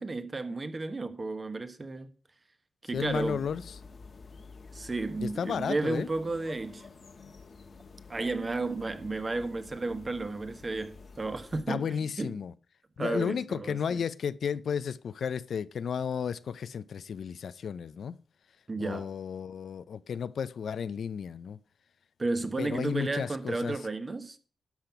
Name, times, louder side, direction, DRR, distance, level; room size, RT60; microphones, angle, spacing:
voice 1, 0.0-2.1 2.8-3.4 4.7-6.9 8.1-12.4 13.0-14.0 18.7-19.1 22.2-24.4, right 3 dB, 30° right, 1.1 m, -33 dB
voice 2, 2.9-3.8 5.2-6.1 11.7-12.5 13.0-18.2 18.8-21.6 22.6-23.8, left 7 dB, 75° left, 0.5 m, -33 dB
sound 1, 2.9-11.6, left 4 dB, 50° left, 1.2 m, -50 dB
11.5 x 5.9 x 5.8 m
wide cardioid pair, 100°, 0 cm